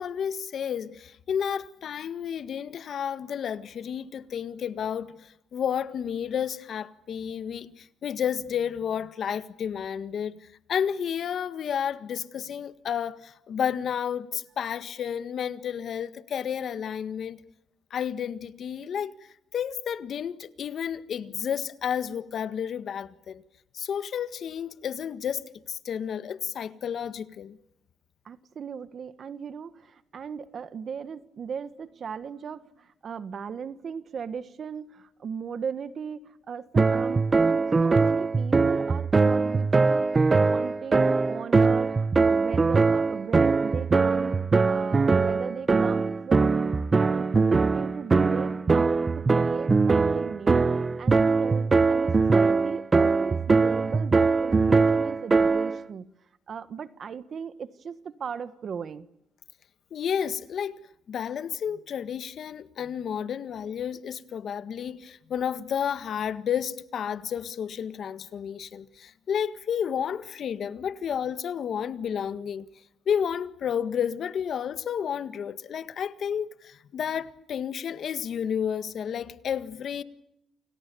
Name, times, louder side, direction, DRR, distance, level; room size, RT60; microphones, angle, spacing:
voice 1, 0.0-17.4 17.9-19.1 19.5-23.4 23.7-27.6 59.9-60.8 61.1-72.6 73.0-80.0, left 8 dB, 60° left, 1.7 m, -31 dB
voice 2, 28.2-40.1 40.4-44.4 44.7-46.6 47.0-50.7 51.0-56.1 56.5-59.1, right 7 dB, 55° right, 1.5 m, -38 dB
sound 1, 36.8-55.8, right 4 dB, 30° right, 0.9 m, -22 dB
29.5 x 28.0 x 7.0 m
cardioid pair, 90°, 0 cm